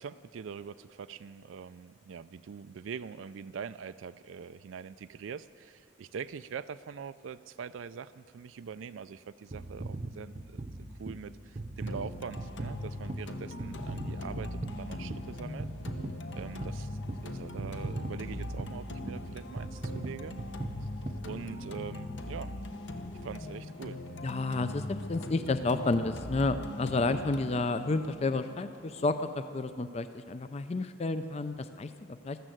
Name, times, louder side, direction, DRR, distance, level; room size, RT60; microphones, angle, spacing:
voice 1, 0.0-10.7 11.0-15.7 16.3-20.4 20.8-20.9 21.2-22.5 23.2-24.0, right 6 dB, 80° right, 12 dB, 0.4 m, -43 dB
sound 1, 9.5-21.9 22.5-22.6, right 2 dB, 35° right, 0.7 m, -40 dB
sound 2, 11.9-29.8, left 1 dB, 65° left, 1.0 m, -41 dB
voice 2, 24.2-32.4, left 3 dB, 30° left, 10 dB, 0.4 m, -31 dB
13.5 x 13.5 x 7.8 m, 2.5 s
head